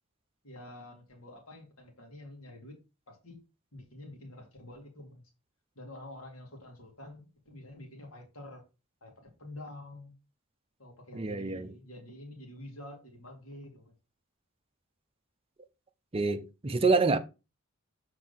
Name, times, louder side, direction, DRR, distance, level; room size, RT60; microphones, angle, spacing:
voice 1, 0.4-2.8 3.1-3.4 3.7-5.2 5.8-8.6 9.0-10.2 10.8-13.9, left 1 dB, 75° left, 2.4 m, -48 dB
voice 2, 11.1-11.7 16.1-17.2, right 3 dB, 25° right, 0.6 m, -27 dB
6.8 x 4.5 x 4.1 m
head